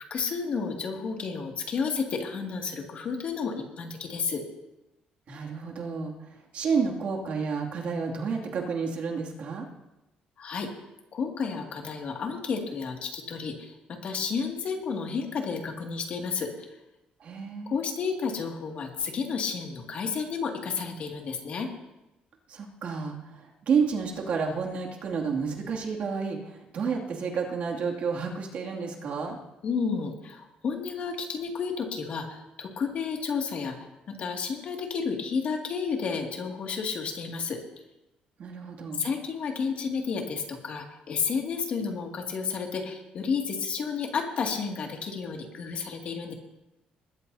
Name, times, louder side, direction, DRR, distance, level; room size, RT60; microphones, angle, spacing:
voice 1, 0.1-4.4 10.4-10.7 11.1-16.7 17.7-21.7 29.6-37.6 39.0-46.3, left 5 dB, 50° left, 1 dB, 2.3 m, -31 dB
voice 2, 5.3-9.7 17.2-17.8 22.5-29.4 38.4-39.0, right 5 dB, 50° right, 0 dB, 2.5 m, -30 dB
21.0 x 14.0 x 2.8 m, 0.96 s
cardioid pair, 155°, 3 cm